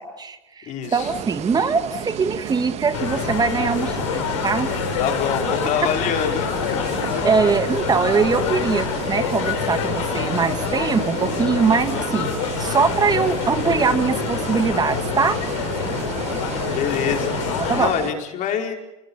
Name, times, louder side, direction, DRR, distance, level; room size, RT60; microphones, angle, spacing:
voice 1, 0.0-4.7 7.2-15.4 17.6-17.9, right 5 dB, 25° right, 9 dB, 1.9 m, -22 dB
voice 2, 0.7-1.1 5.0-7.2 16.7-17.4 17.7-18.8, left 8 dB, 55° left, 3 dB, 4.9 m, -25 dB
sound 1, 0.8-17.5, right 11 dB, 80° right, 2.5 m, -39 dB
sound 2, 1.0-18.1, right 10 dB, 45° right, 1.4 m, -33 dB
crowd terrasse, 2.9-17.9, left 8 dB, 85° left, 4.1 m, -26 dB
28.0 x 21.0 x 7.1 m, 0.98 s
supercardioid pair, 105°, 16 cm